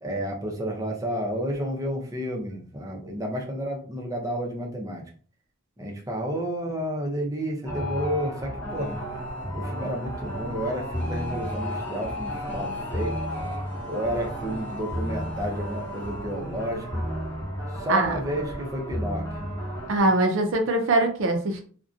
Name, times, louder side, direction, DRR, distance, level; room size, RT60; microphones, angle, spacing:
voice 1, 0.0-5.0 5.8-9.0 9.5-13.2 13.9-17.1 17.7-19.3, equal, 15° right, 0 dB, 0.5 m, -31 dB
sound 1, 7.7-20.0, equal, 10° left, 0.9 m, -33 dB
voice 2, 19.9-21.6, right 2 dB, 75° right, 4 dB, 0.5 m, -22 dB
2.6 x 2.1 x 2.4 m, 0.44 s
head